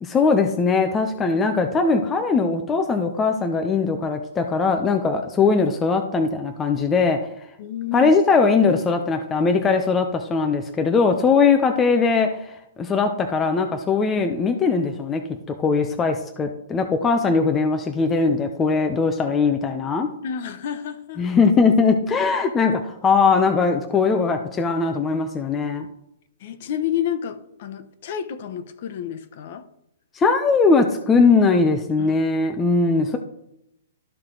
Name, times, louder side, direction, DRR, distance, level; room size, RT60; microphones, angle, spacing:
voice 1, 0.0-7.2 7.9-15.2 15.6-20.1 21.2-25.9 30.1-33.2, left 4 dB, 10° left, 0.5 m, -20 dB
voice 2, 7.6-8.1 20.2-21.3 26.4-29.7 32.0-32.2, left 9 dB, 45° left, 0.8 m, -30 dB
12.5 x 4.5 x 3.8 m
hypercardioid pair, 170°, 0 cm